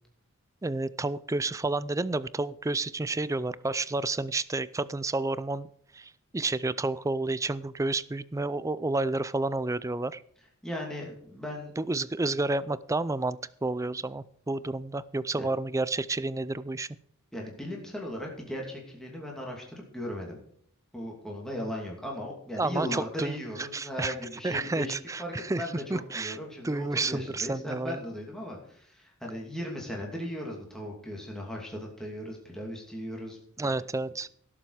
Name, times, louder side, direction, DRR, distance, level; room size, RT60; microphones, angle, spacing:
voice 1, 0.6-5.7 5.9-10.2 11.8-16.9 22.6-24.1 24.4-26.4 26.6-28.0 33.6-34.3, right 2 dB, 15° right, 17 dB, 0.4 m, -30 dB
voice 2, 10.6-11.7 17.3-20.4 20.9-33.7, equal, ahead, -2 dB, 2.7 m, -37 dB
17.0 x 7.5 x 4.9 m, 0.66 s
head